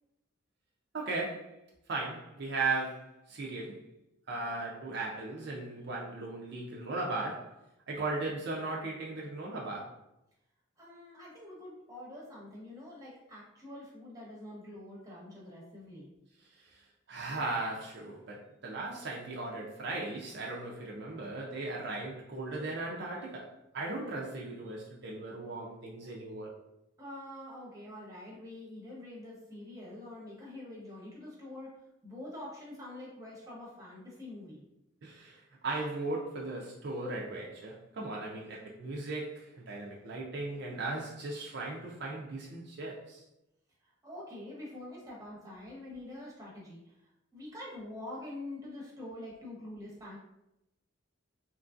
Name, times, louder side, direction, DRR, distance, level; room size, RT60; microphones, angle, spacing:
voice 1, 0.9-1.6 1.9-3.8 4.3-7.5 7.9-9.9 16.6-26.5 35.0-43.2, right 2 dB, 55° right, -3 dB, 0.4 m, -37 dB
voice 2, 10.8-16.1 27.0-31.7 32.0-34.6 44.0-46.9 47.3-50.2, left 1 dB, 15° right, -5 dB, 0.7 m, -45 dB
2.9 x 2.5 x 2.4 m, 0.88 s
head